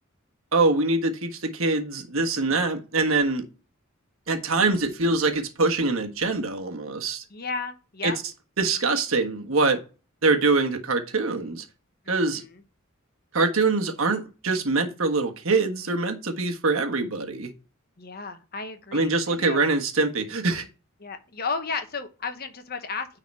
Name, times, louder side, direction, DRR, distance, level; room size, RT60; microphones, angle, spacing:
voice 1, 0.5-3.4 4.3-7.2 8.0-8.1 8.6-9.8 10.2-11.6 12.1-12.4 13.3-17.5 18.9-20.6, right 3 dB, 75° right, 1.5 m, -24 dB
voice 2, 7.3-8.2 12.0-12.6 18.0-19.7 21.0-23.2, left 4 dB, 45° left, 1.1 m, -34 dB
9.6 x 4.1 x 4.2 m
head